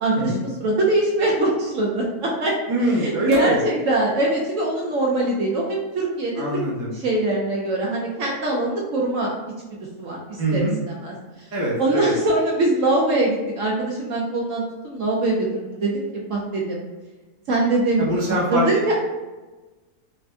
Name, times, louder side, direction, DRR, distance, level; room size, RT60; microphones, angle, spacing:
voice 1, 0.0-2.5 3.0-6.6 6.9-9.3 10.0-10.6 11.0-11.1 11.8-16.8 17.5-18.1 18.5-18.9, right 2 dB, 65° right, -3 dB, 0.9 m, -22 dB
voice 2, 2.7-3.6 6.4-6.9 10.4-10.8 11.5-12.1 18.0-18.7, right 1 dB, 15° right, -7 dB, 0.5 m, -24 dB
4.1 x 2.5 x 2.2 m, 1.2 s
omnidirectional pair, 1.6 m